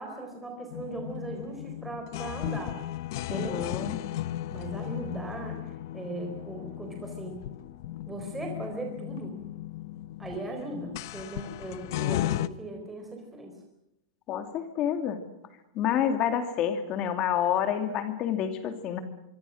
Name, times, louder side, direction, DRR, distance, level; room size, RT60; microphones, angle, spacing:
voice 1, 0.0-2.8 3.3-3.9 4.3-7.5 8.1-9.4 10.2-13.6, right 2 dB, 5° right, 2 dB, 4.2 m, -38 dB
sound 1, 0.7-12.5, left 13 dB, 55° left, 1.0 m, -36 dB
voice 2, 3.3-4.0 14.3-15.2 15.7-19.0, left 9 dB, 30° left, 8 dB, 2.4 m, -28 dB
25.0 x 24.5 x 6.4 m, 0.82 s
supercardioid pair, 160°, 2 cm